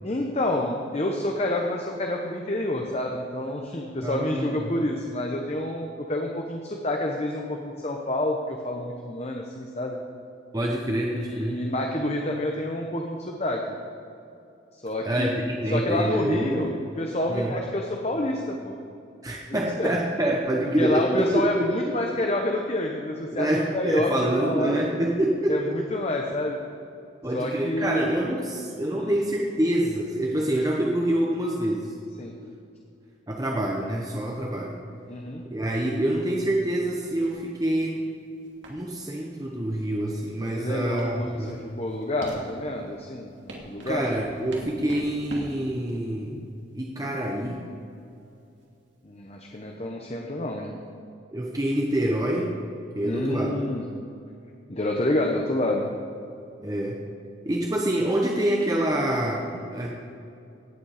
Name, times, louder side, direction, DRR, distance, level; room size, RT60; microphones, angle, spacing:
voice 1, 0.0-10.0 11.1-13.6 14.7-15.3 15.7-18.8 19.5-19.9 20.8-24.7 25.5-26.6 27.3-28.3 28.9-29.1 32.2-32.3 35.1-35.4 40.5-44.1 49.0-50.7 53.0-53.9 54.7-55.9, left 1 dB, 30° left, 1 dB, 0.9 m, -28 dB
voice 2, 4.0-4.7 10.5-11.6 15.0-16.7 17.3-17.5 19.2-22.0 23.3-25.8 27.2-31.9 33.3-34.8 35.4-38.1 38.7-41.6 43.9-46.4 46.7-47.6 51.3-52.5 53.0-53.6 56.6-57.0 57.5-59.9, right 1 dB, 20° right, -1 dB, 0.9 m, -26 dB
sound 1, 37.0-49.7, right 1 dB, 70° right, 2.5 m, -44 dB
17.5 x 8.4 x 4.9 m, 2.6 s
head